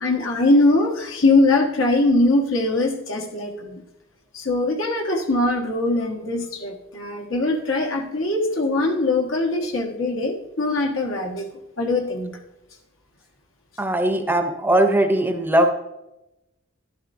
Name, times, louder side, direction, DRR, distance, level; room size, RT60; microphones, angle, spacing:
voice 1, 0.0-3.8 4.3-11.5 11.8-12.3, left 2 dB, 80° left, 2 dB, 1.5 m, -21 dB
voice 2, 13.8-15.7, right 1 dB, 10° right, 6 dB, 0.7 m, -19 dB
12.0 x 12.0 x 2.6 m, 0.94 s
head